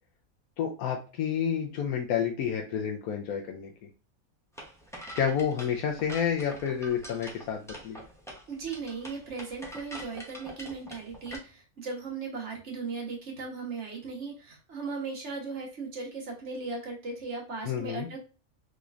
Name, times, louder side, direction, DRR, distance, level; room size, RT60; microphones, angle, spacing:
voice 1, 0.6-3.7 5.1-8.0 17.6-18.1, left 8 dB, 85° left, 1 dB, 1.0 m, -30 dB
sound 1, 4.6-11.4, equal, 5° left, 0.4 m, -44 dB
voice 2, 8.5-18.3, right 4 dB, 55° right, -1 dB, 1.4 m, -37 dB
3.7 x 3.1 x 2.4 m, 0.33 s
omnidirectional pair, 1.5 m